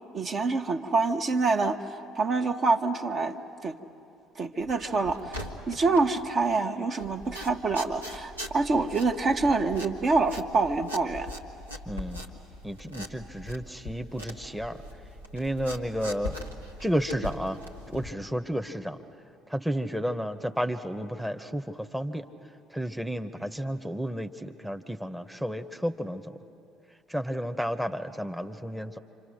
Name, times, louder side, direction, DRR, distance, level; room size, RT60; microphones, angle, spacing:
voice 1, 0.1-3.8 4.4-11.3, right 3 dB, 40° right, 5 dB, 1.2 m, -26 dB
sound 1, 4.6-6.5 7.0-18.1, left 1 dB, 90° right, 1.4 m, -41 dB
voice 2, 11.9-12.2 12.6-14.8 15.3-16.4 16.8-17.6 17.9-19.0 19.5-22.2 22.7-26.4 27.1-29.0, equal, 5° right, 7 dB, 1.0 m, -32 dB
28.5 x 25.5 x 6.5 m, 2.8 s
figure-of-eight pair, 55°, 0 cm